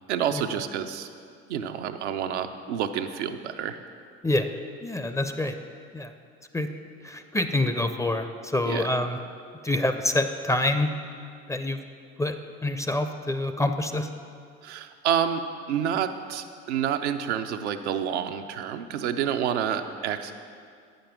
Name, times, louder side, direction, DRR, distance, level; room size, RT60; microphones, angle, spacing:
voice 1, 0.1-1.1 1.5-3.8 8.6-8.9 14.6-15.4 15.7-20.3, right 9 dB, 85° right, 7 dB, 0.5 m, -28 dB
voice 2, 4.8-5.5 5.9-6.1 6.5-6.7 7.0-9.2 9.6-10.9 11.5-11.8 12.2-12.3 12.6-14.1, left 1 dB, 10° left, 8 dB, 0.4 m, -26 dB
8.8 x 5.2 x 5.8 m, 2.3 s
hypercardioid pair, 65°, 33 cm